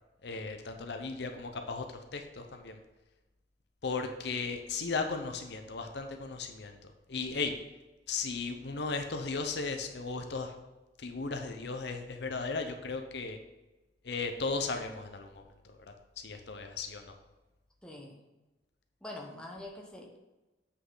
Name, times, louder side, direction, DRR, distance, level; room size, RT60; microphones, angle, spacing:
voice 1, 0.2-1.8 2.1-2.8 3.8-6.8 7.1-7.5 8.1-10.5 11.0-13.4 14.0-15.4 16.2-17.0, left 4 dB, 60° left, 5 dB, 0.7 m, -36 dB
voice 2, 17.8-18.2 19.0-20.2, left 1 dB, 5° left, -1 dB, 1.1 m, -44 dB
8.2 x 5.8 x 3.9 m, 1.1 s
head